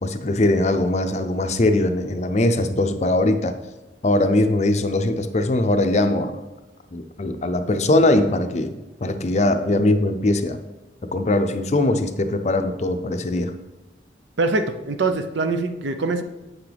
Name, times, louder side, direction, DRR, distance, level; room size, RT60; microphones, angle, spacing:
voice 1, 0.0-3.5 4.0-6.4 6.9-10.6 11.1-13.5, left 2 dB, 40° left, 8 dB, 0.5 m, -21 dB
voice 2, 14.4-16.2, right 3 dB, 85° right, 8 dB, 0.6 m, -23 dB
7.9 x 6.0 x 3.4 m, 1.1 s
head